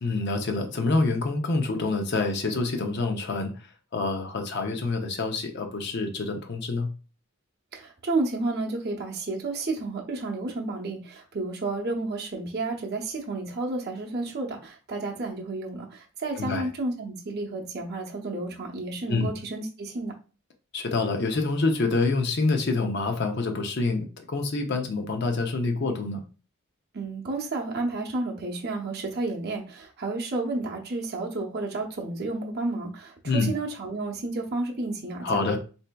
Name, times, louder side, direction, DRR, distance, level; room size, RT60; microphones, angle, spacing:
voice 1, 0.0-3.5 3.9-6.9 16.4-16.6 19.1-19.3 20.7-26.2 33.2-33.5 35.2-35.6, left 3 dB, 50° left, 5 dB, 0.5 m, -26 dB
voice 2, 7.7-20.1 26.9-35.6, right 2 dB, 45° right, -1 dB, 0.8 m, -31 dB
4.3 x 2.7 x 2.2 m, 0.35 s
head